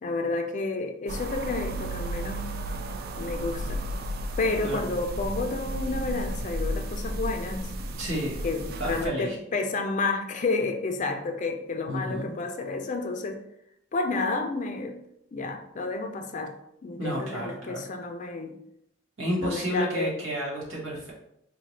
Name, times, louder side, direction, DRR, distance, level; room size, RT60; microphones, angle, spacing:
voice 1, 0.0-2.8 3.2-3.8 4.4-7.9 8.4-13.4 13.9-15.0 15.3-16.6 16.8-18.6 19.4-20.1, left 3 dB, 40° left, 5 dB, 0.4 m, -30 dB
sound 1, 1.1-9.1, right 1 dB, 50° right, 0.3 m, -33 dB
voice 2, 8.0-8.4 8.8-9.4 11.9-12.3 17.0-17.8 19.2-21.1, equal, 80° right, -4 dB, 1.4 m, -31 dB
4.6 x 2.2 x 3.2 m, 0.79 s
head